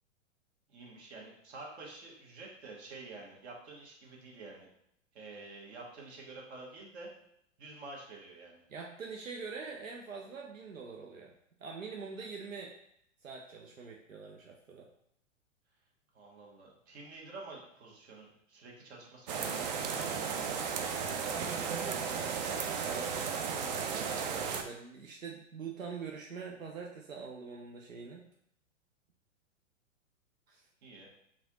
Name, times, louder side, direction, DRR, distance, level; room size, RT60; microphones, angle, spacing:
voice 1, 0.7-4.7 5.1-7.1 7.6-8.6 16.1-20.6 30.8-31.1, right 3 dB, 55° right, -2 dB, 1.3 m, -49 dB
voice 2, 8.7-11.3 11.6-12.7 13.2-14.9 21.3-23.1 23.6-28.2 30.5-30.6, right 5 dB, 90° right, 0 dB, 0.6 m, -44 dB
sound 1, 19.3-24.6, right 6 dB, 35° right, 0.4 m, -34 dB
5.5 x 2.5 x 2.7 m, 0.72 s
figure-of-eight pair, 105°, 39 cm